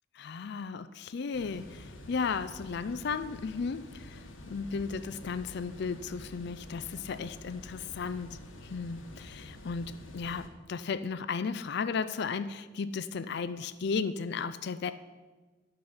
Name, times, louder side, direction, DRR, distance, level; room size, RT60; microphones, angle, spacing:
voice 1, 0.1-14.9, left 5 dB, 55° left, 13 dB, 0.4 m, -35 dB
sound 1, 1.3-10.5, left 1 dB, 75° left, 1.3 m, -48 dB
12.0 x 5.7 x 7.8 m, 1.3 s
head